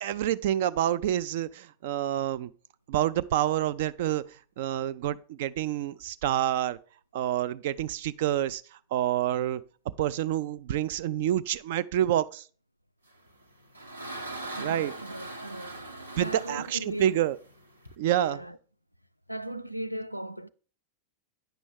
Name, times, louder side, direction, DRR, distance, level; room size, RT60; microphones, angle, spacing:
voice 1, 0.0-2.5 2.9-4.2 4.6-6.8 7.1-8.6 8.9-9.6 10.0-12.4 14.6-14.9 16.2-17.4 18.0-18.4, right 12 dB, 55° right, 0.3 m, -28 dB
sound 1, 13.3-17.9, right 2 dB, 80° right, 1.0 m, -41 dB
voice 2, 14.5-15.8 16.2-17.2 18.1-18.6 19.3-20.5, right 1 dB, 90° left, 0.3 m, -38 dB
9.0 x 6.1 x 3.4 m
figure-of-eight pair, 90°, 0 cm